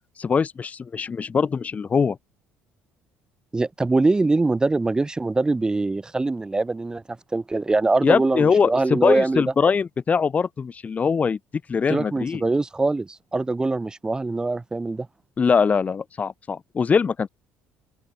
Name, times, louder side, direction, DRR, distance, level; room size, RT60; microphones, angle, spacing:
voice 1, 0.2-2.2 8.0-11.4 11.7-12.4 15.4-17.3, left 5 dB, 30° left, 1.1 m, -22 dB
voice 2, 3.5-7.0 7.3-9.5 11.9-15.1, right 3 dB, 15° right, 0.9 m, -23 dB
open air
supercardioid pair, 85°, 5 cm